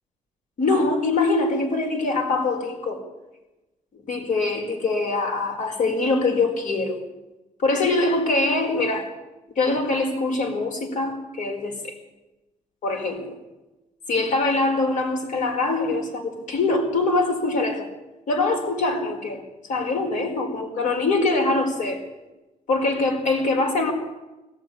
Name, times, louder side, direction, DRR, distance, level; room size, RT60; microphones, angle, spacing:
voice 1, 0.6-3.0 4.1-7.0 7.6-9.1 9.6-12.0 12.8-13.4 14.1-17.9 18.3-19.4 19.7-22.0 22.7-23.9, left 3 dB, 60° left, 4 dB, 4.7 m, -23 dB
22.0 x 14.5 x 10.0 m, 1.1 s
cardioid pair, 150°, 14 cm